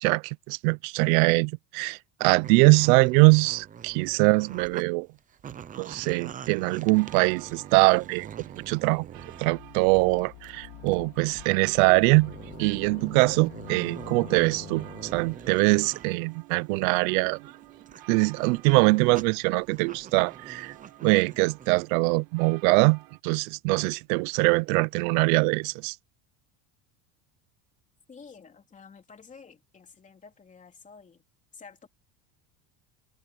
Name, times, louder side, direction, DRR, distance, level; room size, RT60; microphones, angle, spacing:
voice 1, 0.0-5.1 5.8-8.3 8.6-9.1 9.4-12.3 12.6-17.4 18.1-20.7 21.0-26.0, right 27 dB, 80° right, 0.7 m, -23 dB
sound 1, 2.4-4.9 5.2-9.5 10.0-10.5 10.9-11.0 11.4-11.5 12.1-16.1 16.5-21.8, right 8 dB, 20° right, 0.7 m, -45 dB
sound 2, 6.6-23.2, right 17 dB, 55° right, 1.5 m, -51 dB
sound 3, 9.2-15.5, left 21 dB, 70° left, 3.2 m, -46 dB
voice 2, 28.1-31.2 31.5-31.9, left 5 dB, 20° left, 3.2 m, -50 dB
cardioid pair, 170°, 42 cm